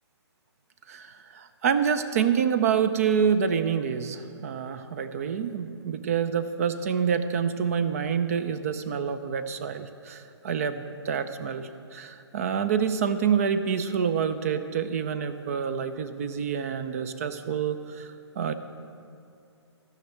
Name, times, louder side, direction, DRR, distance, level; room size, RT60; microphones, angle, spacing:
voice 1, 0.9-18.5, right 7 dB, 30° right, 11 dB, 0.5 m, -27 dB
15.5 x 6.1 x 7.8 m, 2.6 s
figure-of-eight pair, 135°, 15 cm